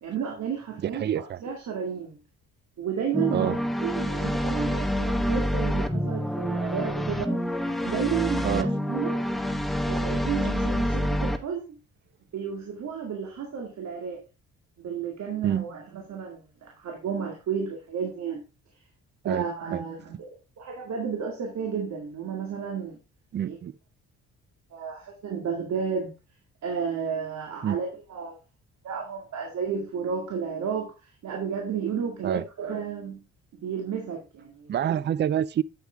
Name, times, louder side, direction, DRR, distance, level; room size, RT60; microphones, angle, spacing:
voice 1, 0.0-2.2 2.8-7.4 7.8-9.2 9.9-11.7 12.3-14.2 14.8-18.4 19.2-23.0 23.4-23.6 24.7-26.1 26.6-28.4 28.8-33.2 33.5-34.7, right 7 dB, 65° right, 2.1 m, -32 dB
voice 2, 1.0-1.4 3.3-3.6 8.4-8.7 15.4-15.6 19.2-19.4 19.7-19.8 23.3-23.7 27.6-27.8 32.2-32.4 34.7-35.6, right 10 dB, 35° right, 0.4 m, -26 dB
sound 1, 3.1-11.4, equal, ahead, 1.0 m, -27 dB
8.2 x 8.0 x 3.5 m
cardioid pair, 90°, 30 cm